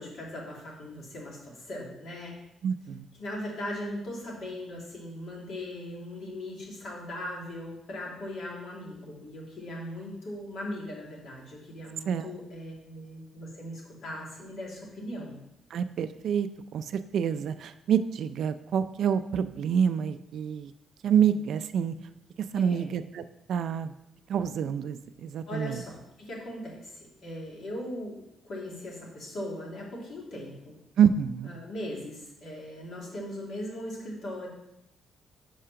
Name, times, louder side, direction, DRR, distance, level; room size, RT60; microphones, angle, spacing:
voice 1, 0.0-2.3 3.2-15.4 22.5-22.9 25.5-28.2 28.4-30.7 31.4-34.5, left 1 dB, 65° left, -3 dB, 2.6 m, -39 dB
voice 2, 2.6-3.1 12.1-12.3 15.7-16.5 16.7-20.7 21.0-22.0 22.5-23.9 24.3-25.8 31.0-31.5, right 8 dB, 70° right, 12 dB, 0.4 m, -27 dB
5.5 x 5.1 x 5.7 m, 0.86 s
cardioid pair, 90°, 0 cm